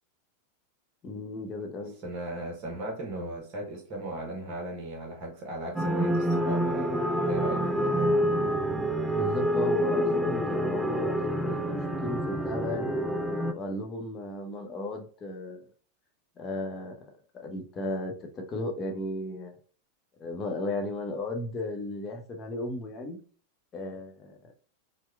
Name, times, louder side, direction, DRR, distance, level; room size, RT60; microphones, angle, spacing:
voice 1, 1.0-2.0 9.0-11.2 11.4-13.0 13.5-15.6 16.4-17.0 17.3-19.6 20.2-23.2 23.7-24.4, left 2 dB, 25° left, 0.8 m, -35 dB
voice 2, 1.8-8.2, right 1 dB, 30° right, 1.1 m, -37 dB
sound 1, 5.8-13.5, equal, ahead, 0.4 m, -27 dB
4.4 x 2.2 x 2.3 m
figure-of-eight pair, 90°, 0 cm